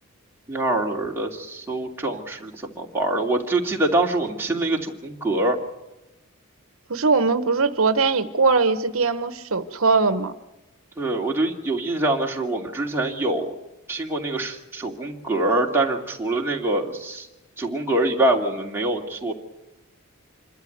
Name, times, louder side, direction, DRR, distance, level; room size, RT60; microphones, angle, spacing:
voice 1, 0.5-5.6 11.0-13.5 13.9-17.3 17.6-19.3, right 2 dB, 10° right, -1 dB, 2.7 m, -24 dB
voice 2, 6.9-10.3, right 4 dB, 70° right, 11 dB, 1.1 m, -21 dB
27.0 x 13.0 x 9.4 m, 1.0 s
head